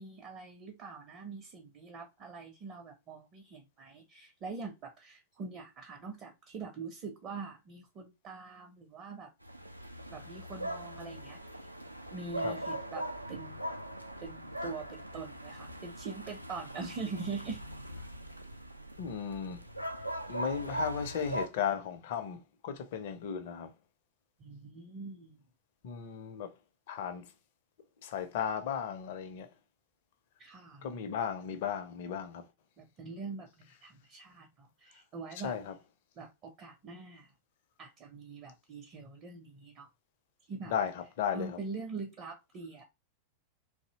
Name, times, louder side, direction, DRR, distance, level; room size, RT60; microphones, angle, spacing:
voice 1, 0.0-9.3 10.1-11.4 12.1-13.6 14.2-17.6 24.4-25.4 30.4-30.9 32.8-33.5 33.8-35.5 36.2-37.3 37.8-39.9 40.5-40.7 41.3-42.8, right 4 dB, 35° right, 0.5 m, -43 dB
sound 1, 9.4-21.5, right 1 dB, 85° right, 0.3 m, -41 dB
voice 2, 19.0-19.6 20.3-23.7 25.8-26.6 26.9-27.2 28.0-29.5 30.8-32.4 35.4-35.7 40.7-41.6, left 8 dB, 50° left, 0.5 m, -35 dB
2.6 x 2.0 x 2.8 m
figure-of-eight pair, 90°, 0 cm